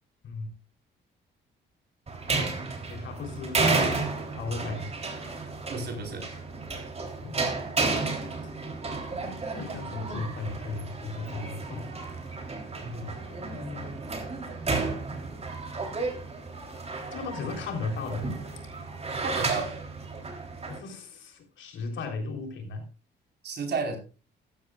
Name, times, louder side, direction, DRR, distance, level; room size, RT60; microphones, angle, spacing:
sound 1, 2.1-20.8, right 3 dB, 30° right, 3.5 m, -32 dB
voice 1, 2.9-3.9 4.3-4.9 7.2-7.4 9.5-11.9 12.2-12.4 12.7-14.0 17.1-18.4 20.7-22.9, left 3 dB, 70° left, 4 dB, 3.8 m, -36 dB
voice 2, 5.7-6.3 12.8-13.1 19.2-19.7 23.4-24.0, right 4 dB, 55° right, 3 dB, 4.5 m, -32 dB
14.5 x 12.5 x 2.4 m, 0.34 s
cardioid pair, 90°, 20 cm